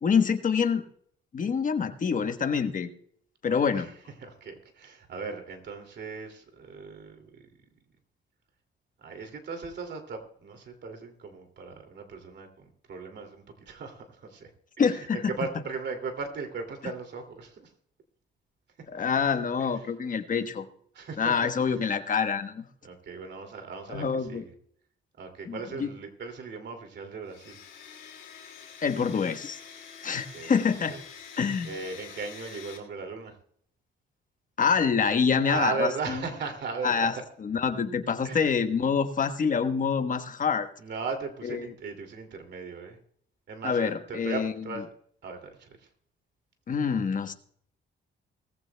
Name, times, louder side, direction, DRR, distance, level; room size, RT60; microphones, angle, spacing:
voice 1, 0.0-0.8 1.3-2.9 3.4-3.9 14.8-15.2 18.9-20.7 21.2-22.7 23.9-24.4 25.4-25.9 28.8-29.6 30.0-30.9 31.4-31.7 34.6-36.2 36.8-37.1 37.4-40.7 41.4-41.7 43.6-44.5 46.7-47.3, left 6 dB, 40° left, 8 dB, 1.2 m, -26 dB
voice 2, 4.2-7.5 9.0-14.5 14.8-14.9 15.1-17.7 20.9-21.3 22.8-24.5 25.2-27.6 30.3-30.5 30.9-31.0 31.6-33.4 35.4-37.1 38.2-38.5 40.8-43.0 43.5-44.9 45.2-45.7, right 4 dB, 60° right, 5 dB, 2.6 m, -37 dB
Domestic sounds home sounds, 27.3-32.8, left 7 dB, 75° left, 2.9 m, -46 dB
19.5 x 15.0 x 2.3 m, 0.62 s
cardioid pair, 90°, 20 cm